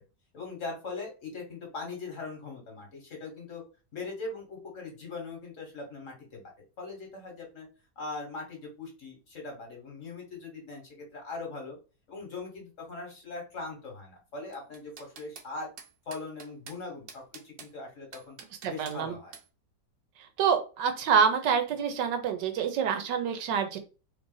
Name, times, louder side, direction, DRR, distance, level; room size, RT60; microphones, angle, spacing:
voice 1, 0.3-3.6 3.9-7.7 8.0-11.8 12.1-15.7 16.0-18.4 18.7-19.4, left 3 dB, 50° left, 1 dB, 1.5 m, -40 dB
sound 1, 14.5-15.5 15.8-16.8 17.1-17.7 18.1-19.0 19.3-19.5, right 6 dB, 70° right, 1.2 m, -47 dB
voice 2, 18.6-19.2 20.4-23.8, right 7 dB, 85° right, 7 dB, 1.4 m, -27 dB
3.3 x 2.5 x 3.8 m, 0.33 s
omnidirectional pair, 1.9 m